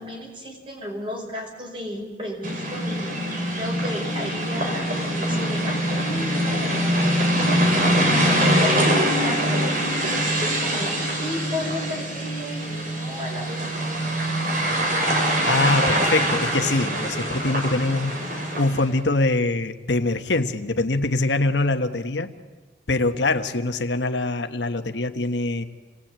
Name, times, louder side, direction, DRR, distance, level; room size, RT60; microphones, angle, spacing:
voice 1, 0.0-3.2 3.5-8.1 8.4-14.1, left 1 dB, 30° right, 1 dB, 5.7 m, -34 dB
sound 1, 2.4-18.9, equal, 50° right, 5.1 m, -23 dB
voice 2, 15.4-22.3 22.9-25.6, left 2 dB, 80° left, 7 dB, 1.3 m, -24 dB
29.5 x 20.0 x 8.9 m, 1.4 s
head